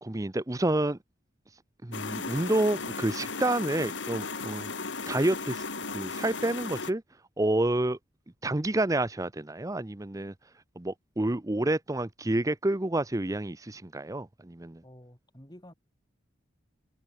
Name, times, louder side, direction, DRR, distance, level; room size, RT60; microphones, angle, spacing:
voice 1, 0.0-1.0 1.8-4.7 5.0-5.7 5.9-7.0 7.4-8.0 8.4-10.3 10.8-14.8, right 1 dB, 15° right, 0.7 m, -29 dB
sound 1, 1.9-6.9, left 4 dB, 70° left, 2.3 m, -36 dB
voice 2, 14.8-15.7, equal, 20° left, 7.6 m, -51 dB
head